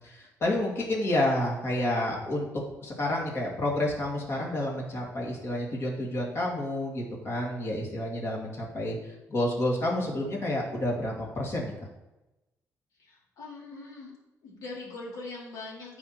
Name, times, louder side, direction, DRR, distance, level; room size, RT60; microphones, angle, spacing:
voice 1, 0.0-2.5 2.8-11.7, left 1 dB, 45° left, -2 dB, 2.4 m, -29 dB
voice 2, 13.0-14.1 14.4-16.0, left 3 dB, 70° left, -4 dB, 2.9 m, -42 dB
14.0 x 4.9 x 3.1 m, 0.99 s
cardioid pair, 135°, 6 cm